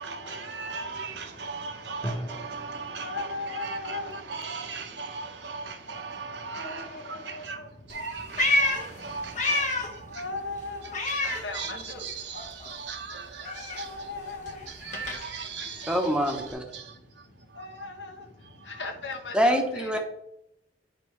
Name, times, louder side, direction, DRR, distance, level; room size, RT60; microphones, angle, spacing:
voice 1, 0.0-10.3 10.8-17.9 18.4-18.8, right 4 dB, 80° right, 0.9 m, -39 dB
Drum, 2.0-3.9, equal, 20° left, 1.3 m, -38 dB
voice 2, 3.0-4.1 6.6-7.7 10.2-11.0 11.4-12.0 13.8-14.6 17.6-18.1 18.8-19.9, left 3 dB, 90° left, 1.2 m, -37 dB
Meow, 7.9-10.1 10.4-12.1 12.3-16.5, left 2 dB, 45° left, 1.1 m, -30 dB
voice 3, 15.9-16.6 19.3-20.0, equal, 5° right, 0.9 m, -24 dB
8.9 x 5.3 x 3.2 m
head